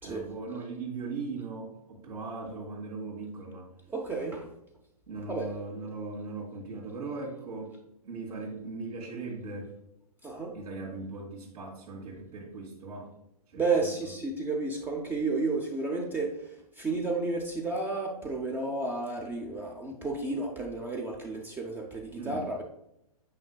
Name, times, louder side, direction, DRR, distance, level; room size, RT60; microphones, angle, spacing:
voice 1, 0.0-3.7 5.1-7.8 8.0-9.7 10.5-13.1 13.5-14.1 22.2-22.5, right 3 dB, 80° right, -7 dB, 2.0 m, -39 dB
voice 2, 3.9-4.5 5.3-5.5 10.2-10.5 13.6-16.4 16.8-22.6, right 3 dB, 10° right, 1 dB, 0.6 m, -32 dB
8.6 x 5.3 x 2.3 m, 0.80 s
hypercardioid pair, 125°, 20 cm